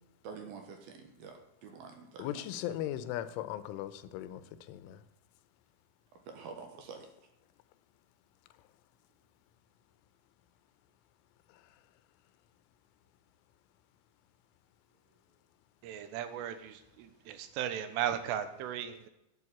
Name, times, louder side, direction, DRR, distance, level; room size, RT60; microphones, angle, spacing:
voice 1, 0.2-2.5 2.7-2.8 6.3-7.1, right 5 dB, 65° right, 4 dB, 2.6 m, -47 dB
voice 2, 2.2-4.4 4.7-5.0, left 12 dB, 85° left, 12 dB, 3.2 m, -38 dB
voice 3, 15.8-19.1, right 10 dB, 85° right, 10 dB, 3.5 m, -36 dB
11.0 x 8.7 x 7.2 m, 0.89 s
omnidirectional pair, 5.6 m